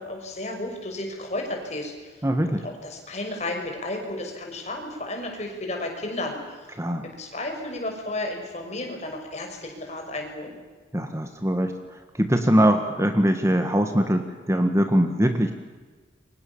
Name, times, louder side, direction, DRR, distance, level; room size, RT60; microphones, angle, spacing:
voice 1, 0.0-6.7 7.0-10.6, left 1 dB, 35° left, 2 dB, 6.3 m, -33 dB
voice 2, 2.2-2.7 6.8-7.1 10.9-11.7 12.2-15.5, equal, 15° right, 7 dB, 1.6 m, -22 dB
29.0 x 24.5 x 7.2 m, 1.4 s
head